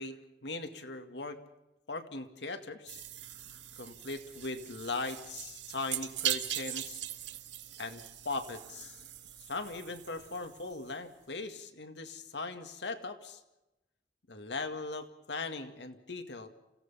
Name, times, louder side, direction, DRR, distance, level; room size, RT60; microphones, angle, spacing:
voice 1, 0.0-1.4 1.9-3.0 3.8-7.0 7.8-9.0 9.4-13.4 14.3-16.5, left 3 dB, 75° left, 7 dB, 2.1 m, -39 dB
sound 1, 2.9-11.0, right 12 dB, 85° right, 1.7 m, -40 dB
29.0 x 17.0 x 5.7 m, 0.95 s
head